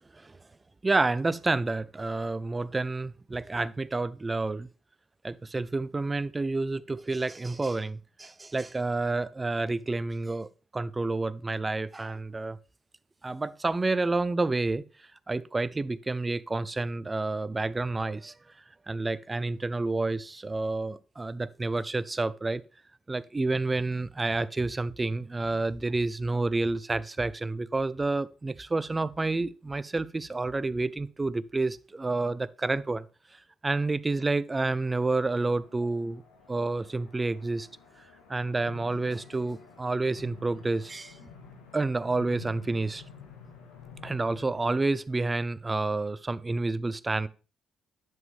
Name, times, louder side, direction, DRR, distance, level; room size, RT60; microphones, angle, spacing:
voice 1, 0.8-4.7 5.2-12.6 13.2-14.8 15.3-18.3 18.9-22.6 23.1-33.0 33.6-36.2 36.5-37.7 38.3-41.1 41.7-43.0 44.0-47.3, right 3 dB, 25° right, 0.6 m, -29 dB
sound 1, 34.9-44.8, left 5 dB, 80° left, 1.9 m, -50 dB
11.0 x 7.3 x 3.4 m
figure-of-eight pair, 45°, 0 cm